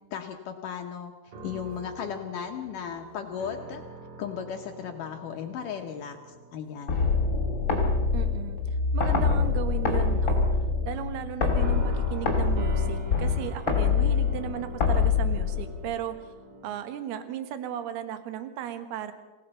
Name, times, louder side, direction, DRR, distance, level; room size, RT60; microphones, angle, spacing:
voice 1, 0.1-3.8 4.2-7.0, left 8 dB, 75° left, 3 dB, 2.0 m, -36 dB
sound 1, 1.3-7.4 7.8-8.0 9.0-9.7 11.6-16.8, right 3 dB, 40° right, 2.4 m, -44 dB
sound 2, 6.9-15.9, left 5 dB, 30° left, 3.3 m, -25 dB
voice 2, 8.1-8.6 8.9-16.2 16.6-19.1, right 10 dB, 70° right, 9 dB, 3.1 m, -36 dB
27.0 x 17.0 x 5.6 m, 1.2 s
omnidirectional pair, 5.2 m